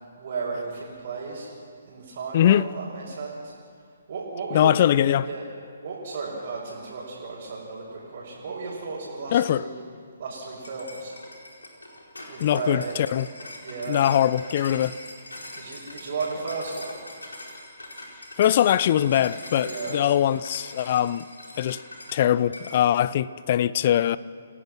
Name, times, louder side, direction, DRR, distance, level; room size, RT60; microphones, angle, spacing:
voice 1, 0.2-1.5 1.9-3.5 4.1-4.8 5.2-5.5 5.8-9.8 10.2-11.1 12.3-13.0 13.6-14.1 15.5-16.9 19.6-20.0, right 4 dB, 55° right, 5.1 m, -34 dB
voice 2, 2.3-2.7 4.5-5.3 9.3-9.7 12.4-13.3 13.9-15.0 18.4-21.2 21.6-21.8 22.1-24.2, left 11 dB, 40° left, 0.6 m, -22 dB
sound 1, 10.6-22.2 22.5-22.8, left 1 dB, 85° left, 4.5 m, -42 dB
28.5 x 17.0 x 6.0 m
figure-of-eight pair, 135°, 0 cm